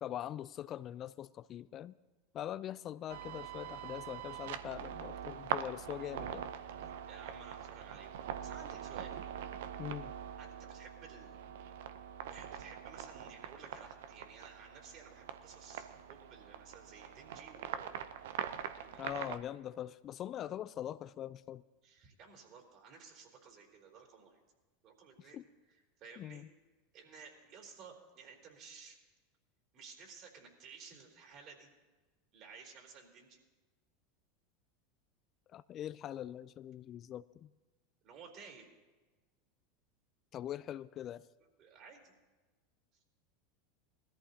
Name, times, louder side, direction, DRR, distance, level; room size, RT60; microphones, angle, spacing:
voice 1, 0.0-1.9 2.3-6.4 9.8-10.1 19.0-21.6 25.3-25.4 26.2-26.4 35.5-37.5 40.3-41.2, left 11 dB, 40° left, 15 dB, 0.3 m, -42 dB
sound 1, 3.1-19.4, right 9 dB, 70° right, 0.7 m, -43 dB
voice 2, 7.1-9.1 10.4-11.4 12.3-17.9 18.7-19.0 21.8-24.4 24.8-25.5 26.0-26.4 26.9-29.0 29.7-31.7 32.3-33.4 38.0-38.7 41.6-42.1, right 5 dB, 50° right, 0 dB, 3.7 m, -55 dB
20.5 x 14.0 x 2.8 m, 1.2 s
hypercardioid pair, 90°, 0 cm